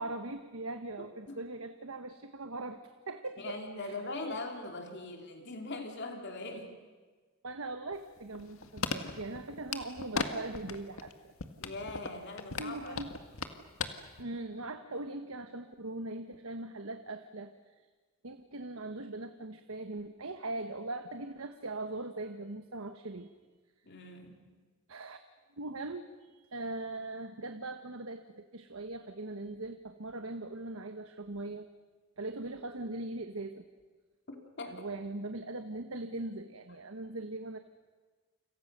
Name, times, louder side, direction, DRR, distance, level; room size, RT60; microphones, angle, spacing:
voice 1, 0.0-2.8 3.1-4.0 4.3-4.4 7.4-11.3 12.6-13.1 14.2-17.5 18.2-23.3 24.9-25.2 25.6-31.7 32.2-33.7 34.6-37.6, right 2 dB, 80° right, 8 dB, 1.3 m, -40 dB
voice 2, 1.0-1.4 3.4-6.7 9.0-9.2 11.6-13.0 23.9-24.4 34.3-34.8, left 2 dB, 55° left, 4 dB, 3.0 m, -41 dB
sound 1, 7.9-10.3 10.5-11.1 11.4-13.9 14.2-14.3, left 4 dB, 80° left, 1.8 m, -36 dB
29.5 x 27.0 x 6.7 m, 1.4 s
head